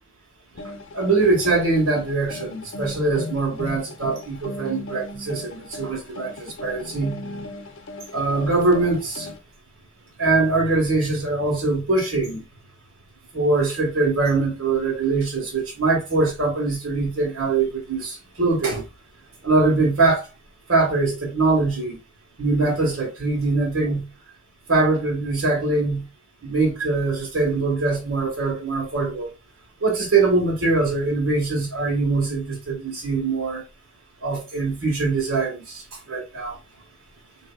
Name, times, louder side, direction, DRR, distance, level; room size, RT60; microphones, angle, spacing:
sound 1, 0.6-9.4, left 2 dB, 60° left, 0.6 m, -37 dB
voice 1, 0.9-7.2 8.1-9.3 10.2-12.4 13.3-18.8 19.4-20.2 20.7-22.0 22.4-24.0 24.7-26.0 26.4-29.3 29.8-33.6 34.2-35.8 36.1-36.5, right 3 dB, 80° right, 1.4 m, -22 dB
3.9 x 2.8 x 2.2 m
head